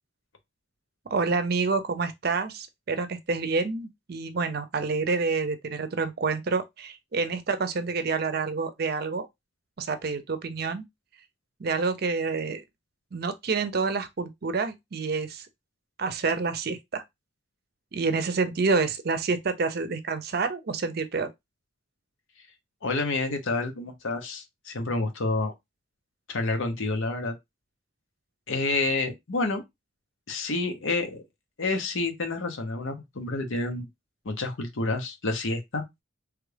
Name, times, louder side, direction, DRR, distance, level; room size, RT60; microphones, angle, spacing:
voice 1, 1.1-9.3 9.8-10.8 11.6-12.6 13.1-15.5 16.0-17.0 17.9-21.3, right 4 dB, 50° right, 0.5 m, -28 dB
voice 2, 22.8-25.5 26.3-27.3 28.5-29.6 30.3-31.2 31.6-33.9 34.2-35.8, left 3 dB, 85° left, 0.9 m, -29 dB
3.3 x 2.3 x 3.2 m
head